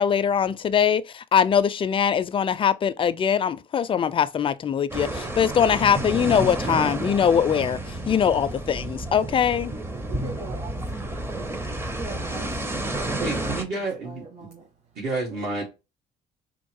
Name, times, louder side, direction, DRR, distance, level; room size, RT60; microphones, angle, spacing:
voice 1, 0.0-9.7, left 8 dB, 30° left, 0.4 m, -22 dB
sound 1, 4.9-13.6, right 1 dB, 15° right, 0.6 m, -30 dB
voice 2, 10.0-15.0 15.3-15.5, right 3 dB, 40° right, 1.2 m, -43 dB
voice 3, 13.2-14.2 15.0-15.6, right 3 dB, 75° right, 2.0 m, -29 dB
3.6 x 2.5 x 4.5 m
cardioid pair, 110°, 17 cm